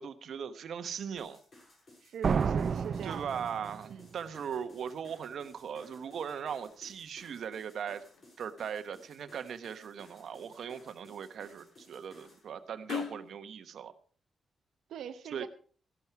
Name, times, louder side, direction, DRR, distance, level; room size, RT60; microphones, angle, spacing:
voice 1, 0.0-1.4 3.0-8.0 8.4-13.9 15.3-15.4, right 7 dB, 65° right, 10 dB, 1.2 m, -39 dB
sound 1, 1.2-12.5, left 1 dB, 35° left, 7.0 m, -59 dB
voice 2, 2.0-3.3 3.9-4.1 14.9-15.5, right 9 dB, 90° right, 6 dB, 0.7 m, -42 dB
sound 2, 2.2-4.0, right 6 dB, 45° right, 0.5 m, -30 dB
sound 3, 4.6-13.3, left 7 dB, 70° left, 2.3 m, -48 dB
15.0 x 12.0 x 4.7 m, 0.43 s
wide cardioid pair, 140°, 0 cm